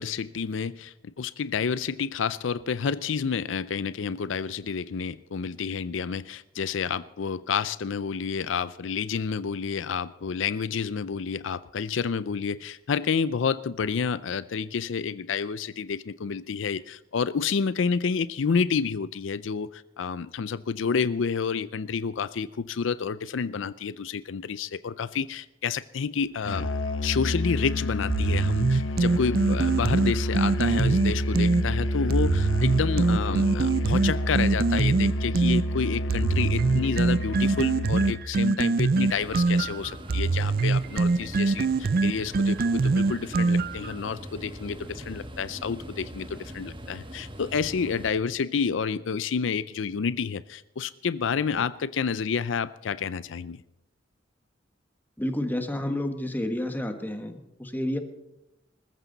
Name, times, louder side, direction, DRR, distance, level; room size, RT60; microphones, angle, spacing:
voice 1, 0.0-26.7 27.0-53.6, left 6 dB, 70° left, 0.5 m, -29 dB
Musical instrument, 26.4-38.3, left 1 dB, 90° left, 1.1 m, -29 dB
sound 1, 28.1-31.6 32.1-35.6 36.1-43.9, right 3 dB, 50° right, 0.4 m, -23 dB
sound 2, 38.9-48.1, right 1 dB, 25° right, 1.5 m, -42 dB
voice 2, 55.2-58.0, left 1 dB, 10° left, 1.4 m, -30 dB
20.5 x 14.0 x 4.0 m
head